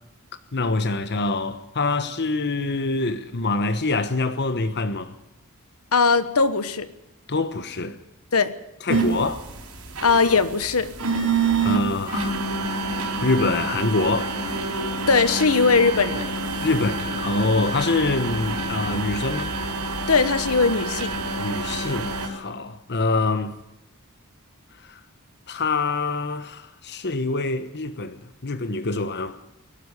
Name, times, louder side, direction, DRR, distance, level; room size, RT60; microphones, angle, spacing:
voice 1, 0.5-5.1 7.3-8.0 8.8-9.4 11.6-12.4 12.6-12.8 13.2-14.6 16.6-19.5 21.4-23.5 24.9-25.0 25.5-29.4, left 3 dB, 50° left, 1.2 m, -25 dB
voice 2, 5.9-6.9 8.3-8.5 10.0-10.9 15.1-16.3 20.1-21.1, left 4 dB, 70° left, 1.3 m, -19 dB
sound 1, 8.9-22.3, right 3 dB, 85° right, 5.1 m, -27 dB
22.0 x 12.5 x 9.8 m
head